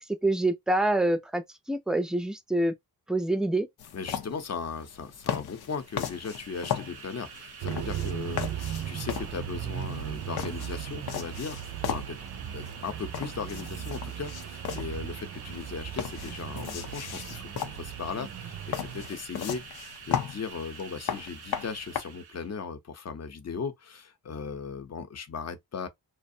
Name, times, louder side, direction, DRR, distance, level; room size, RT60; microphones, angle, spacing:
voice 1, 0.1-2.7 3.1-3.7, right 1 dB, ahead, 0.5 m, -26 dB
sound 1, 3.8-22.0, left 9 dB, 85° left, 0.6 m, -37 dB
voice 2, 3.9-12.2 12.5-25.9, left 5 dB, 45° left, 0.7 m, -37 dB
sound 2, 5.7-22.5, right 6 dB, 80° right, 0.8 m, -47 dB
sound 3, 7.6-19.1, right 10 dB, 55° right, 0.5 m, -37 dB
2.4 x 2.0 x 2.6 m
cardioid pair, 80°, 37 cm